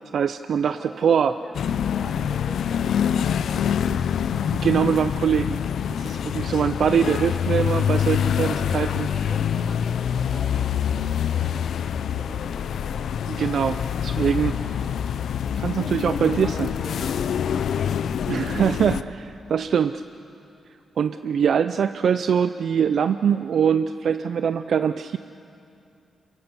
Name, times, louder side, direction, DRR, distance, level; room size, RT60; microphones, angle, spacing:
voice 1, 0.1-1.3 4.5-5.6 5.9-9.1 13.3-14.8 15.6-16.7 18.3-20.0 21.0-25.2, right 7 dB, 60° right, 10 dB, 0.5 m, -23 dB
voice 2, 0.7-4.6 5.9-6.6 8.3-13.1 14.2-14.8 15.7-17.8, right 1 dB, 20° right, 2 dB, 4.2 m, -44 dB
sound 1, 1.5-19.0, left 8 dB, 75° left, 0.6 m, -25 dB
27.5 x 23.0 x 7.0 m, 2.6 s
wide cardioid pair, 150°, 0 cm